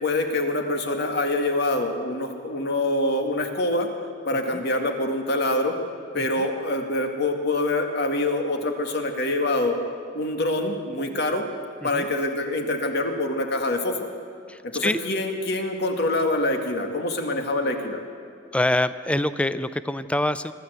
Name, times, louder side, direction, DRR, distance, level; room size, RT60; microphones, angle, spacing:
voice 1, 0.0-3.9 4.3-5.8 6.1-9.8 10.1-11.5 11.8-14.1 14.6-18.0, left 2 dB, 60° left, 4 dB, 2.2 m, -25 dB
voice 2, 14.5-15.0 18.5-20.5, left 1 dB, 5° left, 13 dB, 0.5 m, -25 dB
25.5 x 13.5 x 8.1 m, 2.4 s
head